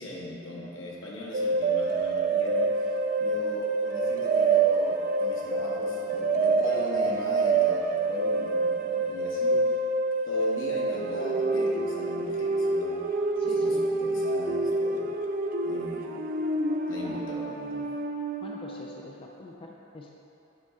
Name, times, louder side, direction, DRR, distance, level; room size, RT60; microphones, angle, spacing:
voice 1, 0.0-9.8 10.2-13.0 13.4-15.1 15.6-16.1 16.9-17.8, left 1 dB, 80° left, -3 dB, 1.2 m, -39 dB
sound 1, 1.3-18.7, right 3 dB, 45° right, 0.4 m, -27 dB
voice 2, 13.4-13.9 16.0-16.2 17.0-17.2 18.4-20.1, left 2 dB, 30° left, -1 dB, 0.4 m, -44 dB
8.7 x 4.2 x 3.6 m, 3.0 s
head